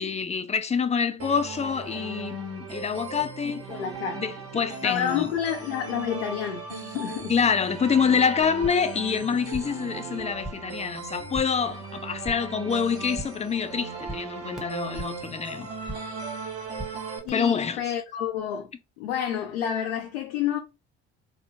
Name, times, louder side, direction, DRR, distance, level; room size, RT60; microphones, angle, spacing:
voice 1, 0.0-3.7 4.1-5.3 7.3-16.0 17.3-17.8, left 6 dB, 20° left, 0.4 m, -26 dB
sound 1, 1.2-17.2, right 5 dB, 45° right, 1.2 m, -38 dB
voice 2, 3.4-4.2 4.8-7.3 17.2-18.7 19.0-20.6, left 9 dB, 80° left, 0.5 m, -29 dB
sound 2, 8.4-9.0 9.2-9.9 10.1-10.8 11.1-11.7 12.0-12.6 12.9-13.5 13.8-15.3 15.6-16.2 16.5-17.3, equal, ahead, 0.9 m, -41 dB
2.9 x 2.0 x 2.7 m
hypercardioid pair, 60°, 33 cm